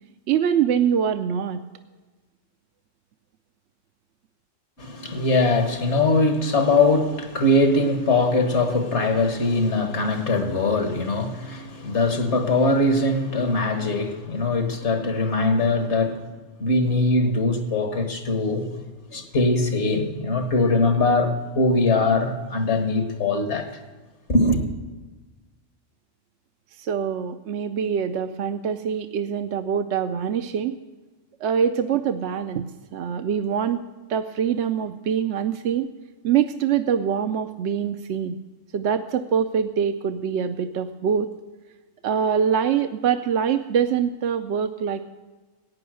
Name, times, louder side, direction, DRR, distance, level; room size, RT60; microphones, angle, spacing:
voice 1, 0.3-1.6 26.8-30.8 31.4-35.9 36.2-38.4 38.7-41.3 42.0-45.0, right 8 dB, 70° right, 0.9 m, -24 dB
voice 2, 4.8-16.3 16.6-18.8 19.1-23.7 24.3-24.6, left 2 dB, 65° left, 1.8 m, -21 dB
15.0 x 9.5 x 6.3 m
omnidirectional pair, 1.3 m